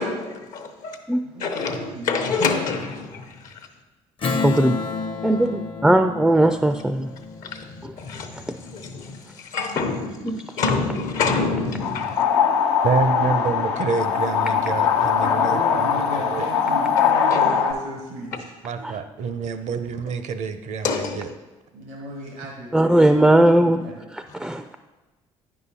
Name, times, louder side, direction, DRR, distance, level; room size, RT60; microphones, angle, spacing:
voice 1, 0.0-1.0 1.4-3.6 7.3-12.2 17.3-17.6 20.8-21.3, left 4 dB, 70° left, 5 dB, 0.9 m, -27 dB
voice 2, 1.2-2.3 15.2-18.5 18.8-18.9 21.7-24.0, right 1 dB, 85° right, 1 dB, 1.1 m, -35 dB
Strum, 4.2-9.1, left 4 dB, 40° left, 0.6 m, -31 dB
voice 3, 4.4-4.7 5.2-7.1 10.2-10.4 22.7-23.8 24.4-24.6, right 1 dB, 5° right, 8 dB, 0.3 m, -18 dB
sound 1, 11.8-17.7, left 7 dB, 90° left, 0.5 m, -21 dB
voice 4, 12.8-15.9 16.3-16.5 18.6-21.3, right 5 dB, 60° right, 10 dB, 0.6 m, -27 dB
9.3 x 5.6 x 2.8 m, 1.1 s
hypercardioid pair, 60°, 14 cm